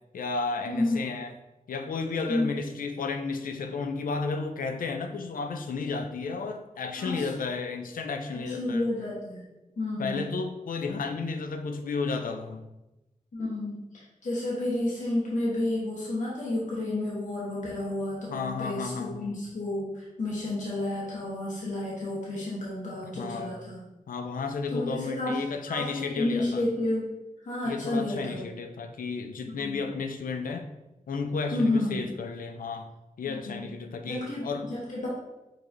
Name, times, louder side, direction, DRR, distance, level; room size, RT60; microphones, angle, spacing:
voice 1, 0.1-1.3 1.7-8.9 10.0-12.7 18.3-19.3 23.1-23.6 24.1-26.7 27.6-30.7 31.1-32.9 33.2-34.7, left 4 dB, 85° left, 7 dB, 0.4 m, -33 dB
voice 2, 0.6-1.1 2.3-2.6 7.0-7.3 8.3-10.3 13.3-23.8 24.7-25.4 25.7-27.1 27.4-28.4 29.6-29.8 31.5-32.0 33.2-33.7 34.1-35.1, left 1 dB, 65° left, -7 dB, 1.2 m, -31 dB
5.0 x 3.0 x 2.6 m, 0.99 s
cardioid pair, 55°, 14 cm